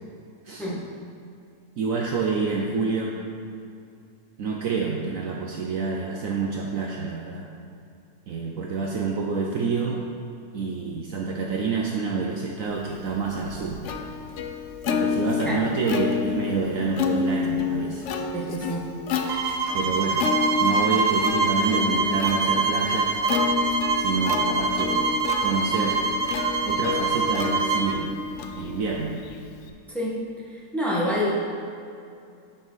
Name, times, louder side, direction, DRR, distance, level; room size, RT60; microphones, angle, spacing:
voice 1, 1.8-3.1 4.4-7.5 8.3-10.0 10.5-13.8 14.9-18.0 19.7-20.3 20.6-23.1 24.0-25.1 25.4-26.0 26.6-28.1 28.6-29.2, right 4 dB, 65° right, -1 dB, 1.0 m, -27 dB
Plucked string instrument, 13.0-29.7, left 6 dB, 65° left, 0.7 m, -30 dB
voice 2, 18.3-18.9 29.9-30.2 30.5-31.4, equal, ahead, -6 dB, 1.4 m, -27 dB
sound 1, 19.3-27.9, right 4 dB, 80° right, 1.3 m, -25 dB
11.5 x 4.8 x 4.1 m, 2.5 s
omnidirectional pair, 1.7 m